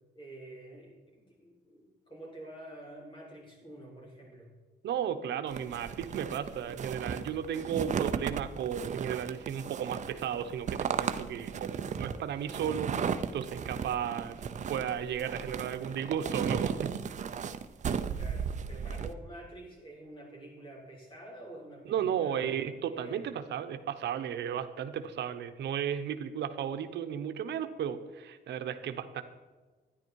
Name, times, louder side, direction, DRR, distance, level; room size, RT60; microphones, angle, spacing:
voice 1, 0.1-4.5 18.2-23.3, right 1 dB, 30° left, -3 dB, 4.4 m, -48 dB
voice 2, 4.8-12.9 13.3-14.4 14.7-16.9 21.9-29.2, right 9 dB, 85° right, 9 dB, 0.9 m, -34 dB
sound 1, 5.5-19.1, right 7 dB, 45° right, 0.6 m, -35 dB
12.5 x 10.5 x 4.6 m, 1.3 s
wide cardioid pair, 160°, 18 cm